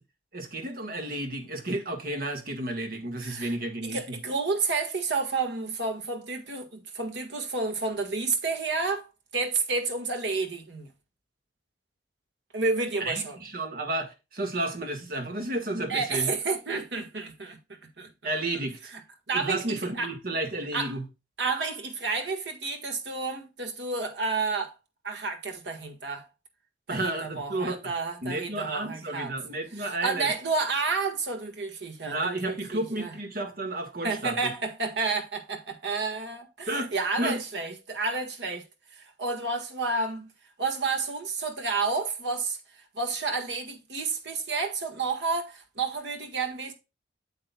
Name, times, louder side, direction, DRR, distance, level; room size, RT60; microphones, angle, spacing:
voice 1, 0.3-4.2 13.0-16.3 18.2-18.9 19.3-21.0 26.9-27.9 28.2-30.3 32.0-34.5 36.7-36.9 37.2-37.4, right 1 dB, 50° right, 1.7 m, -32 dB
voice 2, 3.2-3.5 3.8-9.1 9.3-10.9 12.5-13.4 15.9-18.1 18.5-18.6 18.9-19.0 19.3-20.1 20.7-21.0 21.4-24.7 25.0-26.3 26.9-29.4 29.8-33.1 34.0-38.6 38.9-40.3 40.6-46.7, right 4 dB, 70° right, 1.7 m, -30 dB
8.5 x 7.7 x 2.3 m
head